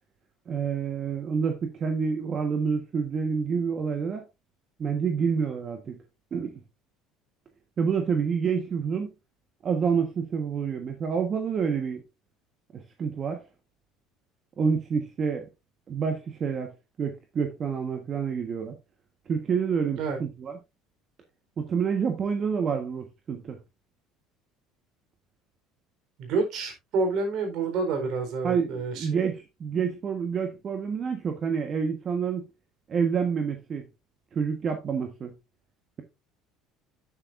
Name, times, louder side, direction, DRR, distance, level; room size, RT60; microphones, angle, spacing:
voice 1, 0.5-4.2 4.8-6.0 6.3-6.6 7.8-9.1 9.6-12.0 12.7-13.4 14.6-15.5 15.9-16.7 17.0-18.7 19.3-20.6 21.6-23.6 28.4-32.5 32.9-33.9 34.3-35.3, right 6 dB, 40° right, 1.4 m, -28 dB
voice 2, 26.2-29.2, right 4 dB, 60° right, 4.2 m, -28 dB
8.8 x 8.2 x 2.6 m
supercardioid pair, 85°, 0 cm